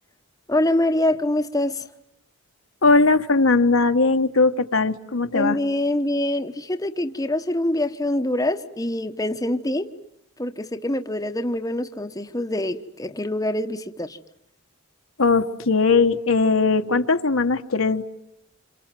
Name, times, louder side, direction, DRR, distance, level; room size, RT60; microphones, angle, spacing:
voice 1, 0.5-1.9 5.3-9.9 10.4-14.2, left 1 dB, 15° left, 1.1 m, -25 dB
voice 2, 2.8-5.6 15.2-18.0, left 3 dB, 70° left, 1.4 m, -19 dB
27.5 x 27.5 x 7.6 m
head